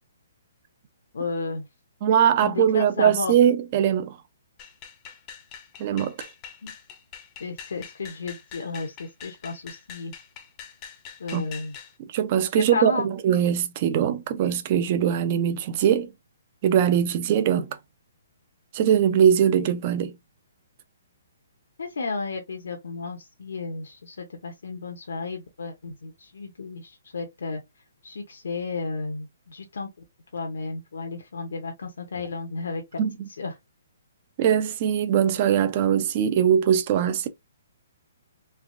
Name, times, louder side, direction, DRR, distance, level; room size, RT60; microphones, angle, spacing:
voice 1, 1.1-1.6 2.4-3.3 6.6-6.7 7.4-10.1 11.2-11.7 12.7-13.1 21.8-27.6 28.0-29.9 30.3-33.0 33.4-33.5, left 4 dB, 75° left, 0.7 m, -33 dB
voice 2, 2.0-4.2 5.8-6.3 11.3-11.4 12.1-16.1 16.6-17.8 18.7-20.1 33.0-33.3 34.4-37.3, right 9 dB, 35° right, 0.5 m, -21 dB
sound 1, 4.6-11.9, left 7 dB, 25° left, 0.6 m, -44 dB
3.3 x 2.4 x 2.5 m
hypercardioid pair, 155°, 0 cm